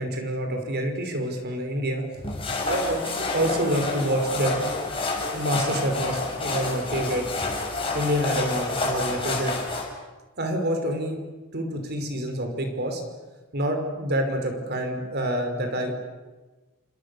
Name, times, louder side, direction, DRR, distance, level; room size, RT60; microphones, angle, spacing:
voice 1, 0.0-2.4 2.7-4.6 5.3-7.2 7.9-9.5 10.4-11.2 11.5-13.0 13.5-16.0, right 1 dB, 50° right, 5 dB, 5.5 m, -27 dB
sound 1, 2.2-9.9, left 3 dB, 25° left, 6.5 m, -29 dB
29.5 x 26.5 x 7.2 m, 1.2 s
head